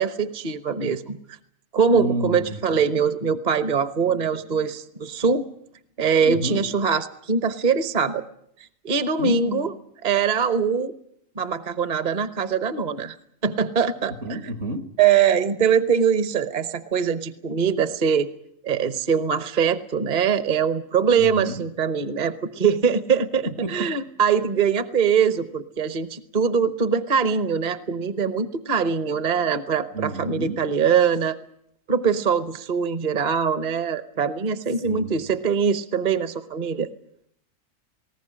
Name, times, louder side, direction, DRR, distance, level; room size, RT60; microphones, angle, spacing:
voice 1, 0.0-1.4 1.7-5.4 6.0-8.2 8.8-9.7 10.0-10.9 11.4-13.2 13.4-14.4 15.0-18.3 18.6-31.4 31.9-36.9, right 6 dB, 35° right, 1.0 m, -22 dB
voice 2, 1.9-2.6 6.2-6.6 9.2-9.6 14.2-14.9 21.2-21.7 23.6-23.9 29.9-30.6 34.8-35.1, right 2 dB, 65° right, 2.1 m, -29 dB
20.0 x 19.0 x 8.8 m
omnidirectional pair, 1.4 m